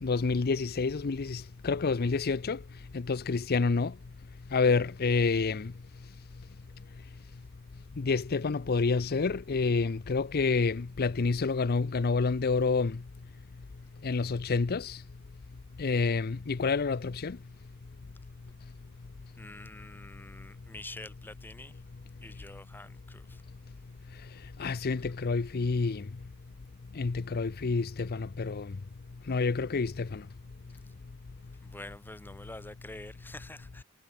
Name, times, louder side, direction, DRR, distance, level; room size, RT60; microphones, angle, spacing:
voice 1, 0.0-2.6 2.9-3.9 4.5-5.7 8.0-13.0 14.0-15.0 15.8-17.4 24.6-26.0 27.0-28.7 29.3-30.2, left 4 dB, 45° left, 0.6 m, -28 dB
voice 2, 19.4-21.8 22.2-23.4 31.5-33.8, left 2 dB, 10° left, 1.3 m, -47 dB
head